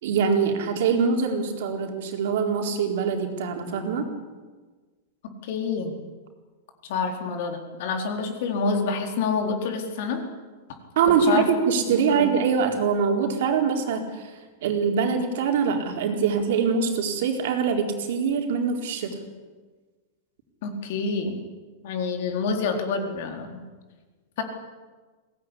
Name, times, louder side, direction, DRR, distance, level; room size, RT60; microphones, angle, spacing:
voice 1, 0.0-4.1 11.0-19.2, right 6 dB, 65° right, 3 dB, 4.2 m, -24 dB
voice 2, 5.4-6.0 6.9-10.2 11.3-11.5 12.1-12.3 20.6-21.4 21.8-23.6 24.4-24.5, left 4 dB, 55° left, 4 dB, 4.2 m, -27 dB
22.0 x 18.0 x 10.0 m, 1.4 s
supercardioid pair, 165°, 0 cm